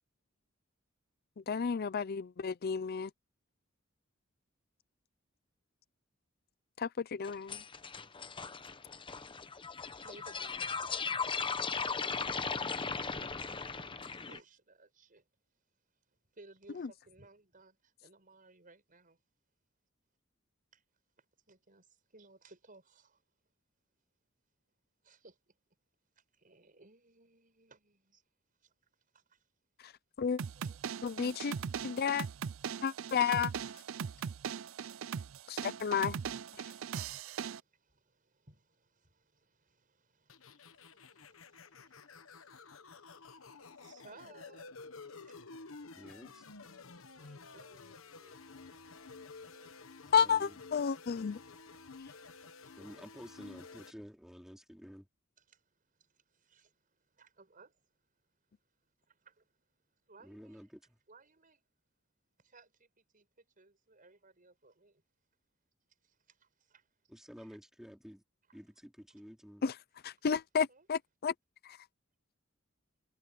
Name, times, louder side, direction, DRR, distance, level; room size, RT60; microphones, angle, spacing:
voice 1, 1.5-3.1 6.8-7.6 30.2-30.4 31.0-31.5 31.8-32.3 32.8-33.5 35.5-36.2 50.1-51.4 69.6-69.7 70.0-71.3, left 6 dB, 50° left, 0.5 m, -31 dB
sound 1, 7.2-14.4, left 5 dB, 25° left, 0.9 m, -37 dB
voice 2, 9.8-11.3 12.0-15.3 16.1-19.2 20.7-20.8 21.2-23.2 25.0-25.5 26.2-28.2 28.6-28.7 29.1-29.5 30.2-31.2 37.3-45.8 47.0-50.1 51.1-51.2 55.4-58.6 59.1-59.8 60.1-60.6 61.1-61.6 62.4-65.0 66.0-66.9 67.4-67.6 68.5-68.6 69.1-69.2 70.2-70.3 70.7-70.9, right 3 dB, 45° right, 6.2 m, -62 dB
sound 2, 30.4-37.6, right 7 dB, 70° right, 0.5 m, -40 dB
sound 3, 40.3-53.9, left 4 dB, 90° left, 1.2 m, -52 dB
voice 3, 45.9-46.4 50.1-50.6 52.8-55.1 60.2-61.0 67.1-68.2 68.5-69.6, equal, ahead, 3.0 m, -51 dB
head